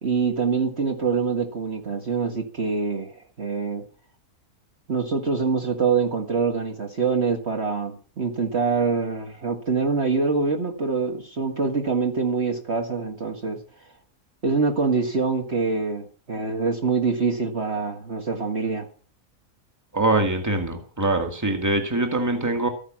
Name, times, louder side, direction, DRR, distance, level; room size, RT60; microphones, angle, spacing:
voice 1, 0.0-3.8 4.9-13.6 14.4-18.9, right 4 dB, 45° right, 4 dB, 2.1 m, -25 dB
voice 2, 19.9-22.7, right 2 dB, 10° right, 5 dB, 2.1 m, -23 dB
14.0 x 9.9 x 6.2 m, 0.40 s
omnidirectional pair, 1.6 m